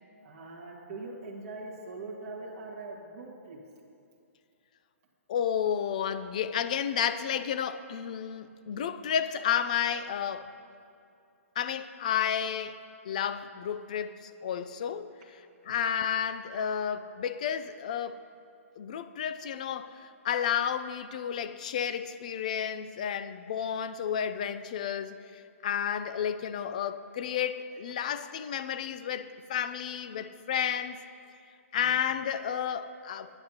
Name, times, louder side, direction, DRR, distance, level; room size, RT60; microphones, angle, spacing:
voice 1, 0.2-3.6 15.6-15.7 31.7-32.0, right 3 dB, 30° right, 1.7 m, -42 dB
voice 2, 5.3-10.5 11.6-15.4 15.7-18.2 18.8-31.0 31.7-33.3, left 8 dB, 30° left, 0.4 m, -32 dB
20.0 x 9.8 x 2.9 m
hypercardioid pair, 175°, 8 cm